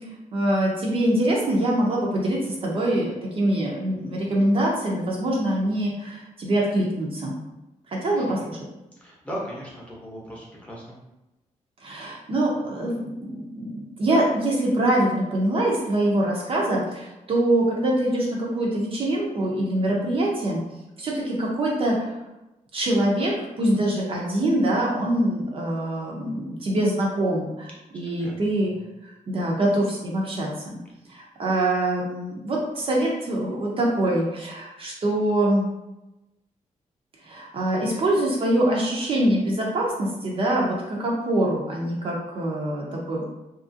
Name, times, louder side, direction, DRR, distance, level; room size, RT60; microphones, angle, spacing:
voice 1, 0.3-7.4 7.9-8.6 11.8-20.6 21.0-22.1 22.7-28.7 29.0-30.8 31.1-35.7 37.2-43.2, right 1 dB, 45° right, -3 dB, 0.5 m, -24 dB
voice 2, 9.0-11.0 28.2-28.3 28.6-28.7, equal, 10° left, -5 dB, 0.7 m, -37 dB
2.8 x 2.4 x 2.6 m, 0.97 s
wide cardioid pair, 165°, 13 cm